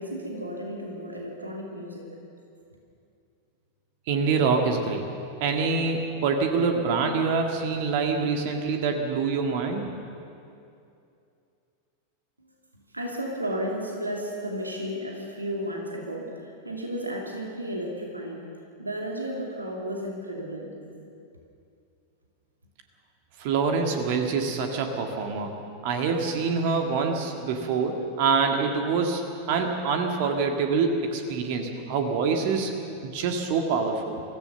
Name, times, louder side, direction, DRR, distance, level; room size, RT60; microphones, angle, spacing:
voice 1, 0.0-2.1 12.4-12.5 12.7-18.4 18.8-20.7, equal, 85° right, -1 dB, 2.7 m, -33 dB
voice 2, 4.1-5.1 5.4-9.9 23.4-25.5 25.8-29.2 29.5-32.7 33.0-34.2, right 5 dB, 50° right, 4 dB, 1.9 m, -25 dB
24.0 x 16.0 x 6.9 m, 2.6 s
figure-of-eight pair, 90°, 0 cm